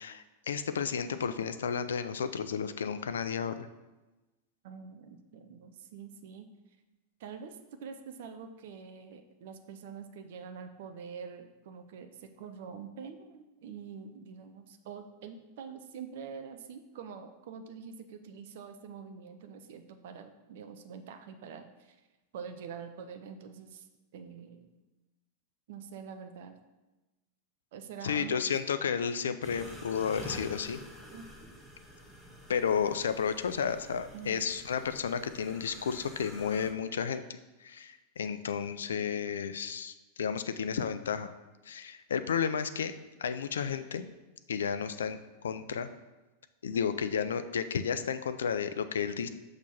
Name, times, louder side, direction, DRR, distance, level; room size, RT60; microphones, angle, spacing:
voice 1, 0.0-3.7 28.0-30.8 32.5-37.2 37.6-41.3 41.7-42.9 43.2-44.1 44.5-45.2 45.4-45.9 46.6-49.3, left 7 dB, 65° left, 11 dB, 0.3 m, -32 dB
voice 2, 4.6-6.5 7.2-22.0 22.3-23.9 24.1-24.8 25.7-26.6 27.7-28.4 31.1-31.2 34.1-34.5, right 6 dB, 55° right, 7 dB, 0.5 m, -45 dB
sound 1, 29.4-36.7, equal, ahead, 0.9 m, -48 dB
6.1 x 2.9 x 5.5 m, 1.1 s
figure-of-eight pair, 90°, 0 cm